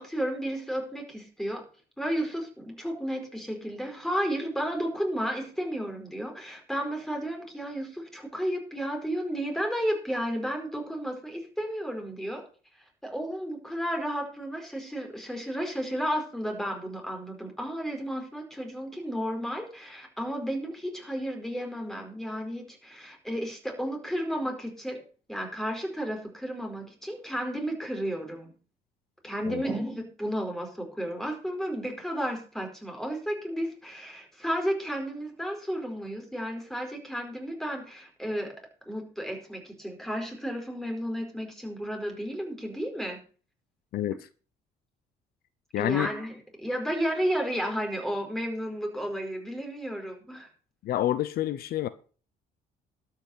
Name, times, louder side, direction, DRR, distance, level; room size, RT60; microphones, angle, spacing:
voice 1, 0.0-1.6 2.0-12.4 13.0-25.0 25.3-28.5 29.2-38.5 38.9-43.2 45.7-50.5, equal, ahead, 4.5 m, -32 dB
voice 2, 45.7-46.1 50.8-51.9, left 13 dB, 65° left, 0.8 m, -28 dB
12.5 x 5.8 x 7.8 m
cardioid pair, 110°, 17 cm